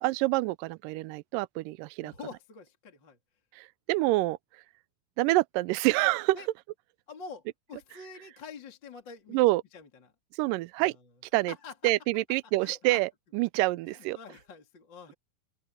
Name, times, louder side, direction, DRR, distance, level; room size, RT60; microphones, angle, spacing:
voice 1, 0.0-2.1 3.6-4.4 5.2-6.4 9.3-9.6 10.3-10.9 11.3-11.5 11.8-14.2, right 20 dB, 85° right, 1.9 m, -27 dB
voice 2, 2.0-3.2 6.3-6.5 7.1-9.4 9.7-10.1 10.8-11.0 11.5-11.9 12.6-13.0 13.8-15.1, left 5 dB, 30° left, 3.2 m, -46 dB
open air
omnidirectional pair, 4.4 m